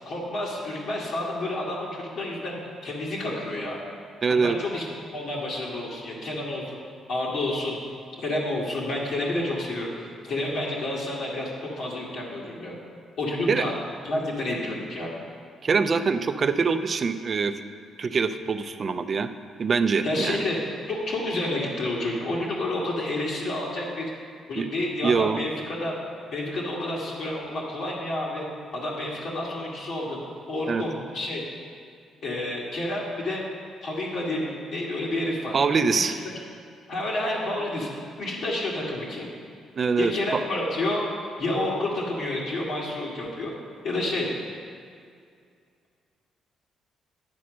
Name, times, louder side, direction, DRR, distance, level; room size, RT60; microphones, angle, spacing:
voice 1, 0.1-2.6 2.8-3.8 4.3-4.9 5.1-6.8 7.1-7.8 8.2-9.9 10.2-12.8 13.2-13.7 14.0-15.1 20.0-20.6 20.9-24.1 24.5-26.0 26.3-28.5 28.7-30.2 30.5-31.4 32.2-33.4 33.8-35.6 36.0-36.1 36.9-37.9 38.2-39.3 40.0-41.0 41.4-43.6 43.8-44.3, left 1 dB, 70° left, -5 dB, 1.6 m, -29 dB
voice 2, 4.2-4.6 13.5-13.6 15.6-17.5 18.0-19.3 19.6-20.4 24.6-24.7 25.0-25.4 30.7-30.8 35.5-36.1 39.8-40.4, right 5 dB, 45° right, 10 dB, 0.4 m, -24 dB
9.5 x 4.3 x 6.2 m, 2.2 s
cardioid pair, 90°, 0 cm